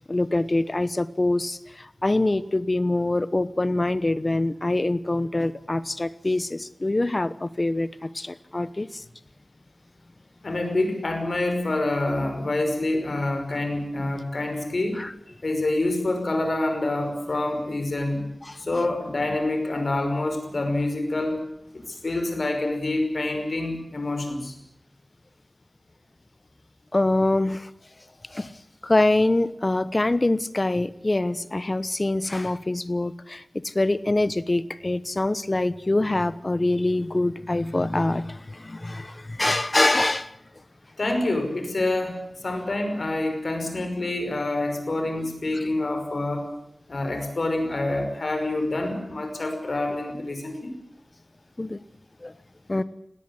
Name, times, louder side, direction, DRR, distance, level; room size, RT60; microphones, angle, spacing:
voice 1, 0.1-9.0 15.0-15.1 26.9-27.7 28.3-28.5 28.8-40.3 51.6-51.8 52.2-52.3 52.7-52.8, left 2 dB, 40° left, 15 dB, 1.0 m, -24 dB
voice 2, 10.4-15.0 15.4-18.3 18.6-21.4 21.7-24.5 41.0-46.5 46.9-50.7, left 2 dB, 70° left, 5 dB, 5.5 m, -27 dB
19.5 x 17.5 x 9.7 m, 0.81 s
wide cardioid pair, 70°, 0 cm